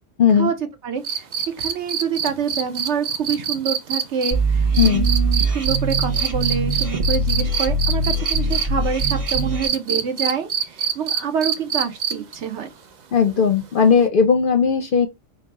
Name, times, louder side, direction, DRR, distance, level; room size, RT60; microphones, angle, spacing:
voice 1, 0.2-0.5 4.8-5.1 13.1-15.1, left 6 dB, 55° left, 0.6 m, -17 dB
voice 2, 0.8-12.7, right 6 dB, 65° right, 1.1 m, -27 dB
sound 1, 1.0-8.6 9.0-12.3 14.0-14.1, right 8 dB, 50° right, 0.5 m, -24 dB
sound 2, 4.3-9.7, right 2 dB, 30° right, 1.1 m, -22 dB
4.1 x 2.2 x 4.0 m
omnidirectional pair, 1.3 m